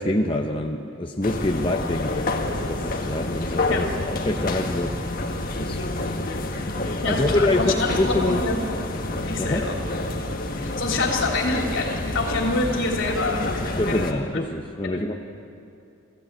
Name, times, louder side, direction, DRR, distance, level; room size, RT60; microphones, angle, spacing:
voice 1, 0.0-5.3 5.6-6.3 6.7-8.4 9.4-9.6 13.8-15.1, left 1 dB, 25° left, 2 dB, 0.7 m, -26 dB
sound 1, 1.2-14.1, left 2 dB, 45° left, 1.6 m, -28 dB
voice 2, 7.0-8.8 9.3-9.8 10.6-14.2 14.8-15.1, left 2 dB, 65° left, 0 dB, 3.3 m, -27 dB
20.5 x 14.5 x 8.9 m, 2.6 s
head